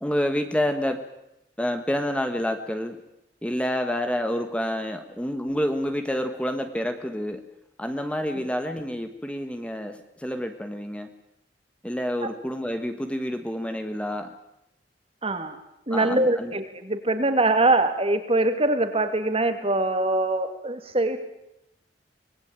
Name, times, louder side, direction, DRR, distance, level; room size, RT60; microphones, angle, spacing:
voice 1, 0.0-1.0 1.6-3.0 3.4-7.4 7.8-11.1 11.8-14.3 15.9-16.5, equal, 5° left, 6 dB, 1.5 m, -28 dB
voice 2, 15.2-15.6 15.9-21.2, right 2 dB, 35° right, 8 dB, 2.6 m, -23 dB
25.5 x 20.5 x 9.0 m, 0.84 s
head